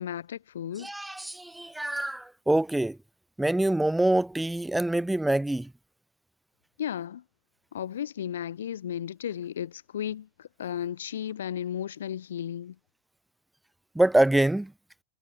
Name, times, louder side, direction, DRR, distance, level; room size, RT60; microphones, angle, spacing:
voice 1, 0.0-0.9 6.8-7.2 7.7-12.8, left 9 dB, 65° left, 1.0 m, -34 dB
voice 2, 0.8-3.0 3.4-5.7 13.9-14.7, right 1 dB, 5° right, 1.5 m, -25 dB
figure-of-eight pair, 90°, 0 cm